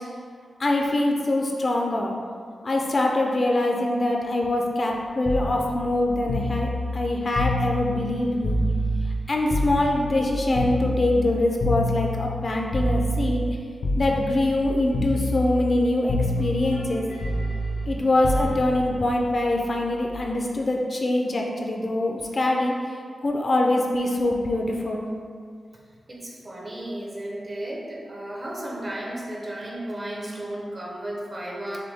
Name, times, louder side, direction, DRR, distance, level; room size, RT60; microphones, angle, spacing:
voice 1, 0.6-2.1 2.6-8.6 9.3-13.4 14.0-17.0 17.9-22.7 23.2-25.1, left 1 dB, 40° left, 0 dB, 0.5 m, -24 dB
sound 1, 5.2-9.2 9.5-13.5 13.8-14.7 14.9-15.8 16.1-20.1 21.3-21.5, left 1 dB, 85° left, 0.7 m, -27 dB
voice 2, 26.1-31.8, right 1 dB, 35° right, -3 dB, 0.9 m, -34 dB
6.8 x 2.3 x 3.4 m, 2.1 s
wide cardioid pair, 105°, 0 cm